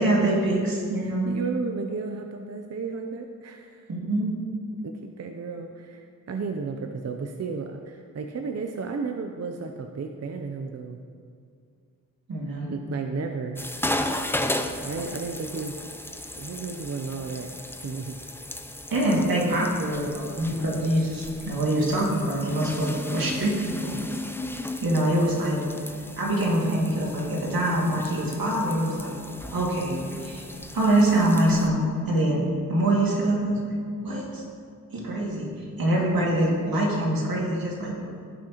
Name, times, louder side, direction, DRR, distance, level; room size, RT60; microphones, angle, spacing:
voice 1, 0.0-1.3 3.9-4.3 12.3-12.7 18.9-24.0 24.8-25.6 26.2-29.1 29.5-30.4 30.7-34.4 34.9-38.0, right 1 dB, 75° right, -3 dB, 2.2 m, -24 dB
voice 2, 1.0-3.9 4.8-11.0 12.7-13.6 14.8-15.8 16.4-18.2, right 4 dB, 45° right, 5 dB, 0.6 m, -33 dB
sound 1, 13.6-31.7, left 1 dB, 5° left, 0.5 m, -35 dB
16.5 x 6.1 x 2.9 m, 2.3 s
wide cardioid pair, 80°, 35 cm